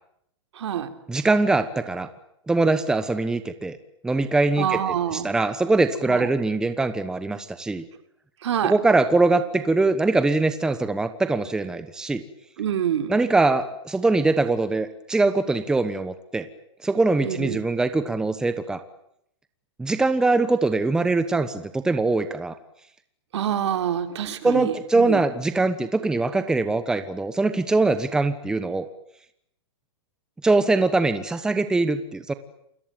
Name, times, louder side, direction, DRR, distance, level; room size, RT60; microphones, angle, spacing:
voice 1, 0.5-0.9 4.6-5.3 6.1-6.3 8.4-8.7 12.6-13.2 17.2-17.6 23.3-25.2, right 9 dB, 70° right, 8 dB, 3.6 m, -26 dB
voice 2, 1.1-2.1 2.5-3.8 4.0-4.8 5.1-7.8 8.6-12.2 13.1-16.5 16.8-18.8 19.8-22.6 24.4-28.9 30.4-32.3, right 3 dB, 5° right, 10 dB, 1.1 m, -22 dB
28.5 x 22.5 x 9.1 m, 0.75 s
hypercardioid pair, 160°, 15 cm